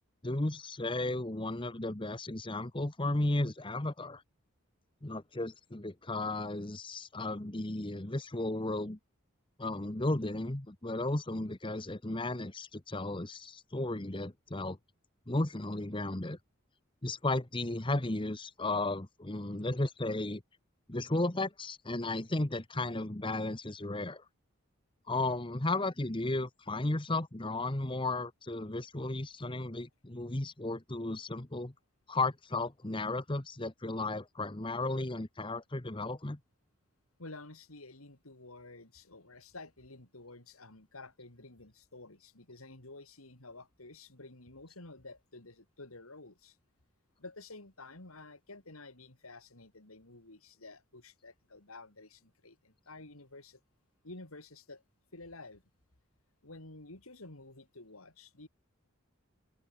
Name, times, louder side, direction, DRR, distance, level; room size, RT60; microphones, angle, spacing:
voice 1, 0.2-4.2 5.0-9.0 9.6-14.8 15.3-16.4 17.0-20.4 20.9-24.2 25.1-31.7 32.1-36.4, left 2 dB, 25° left, 1.2 m, -34 dB
voice 2, 37.2-46.6 47.2-53.6 54.0-54.8 55.1-55.6 56.4-58.5, left 2 dB, 85° left, 4.0 m, -51 dB
head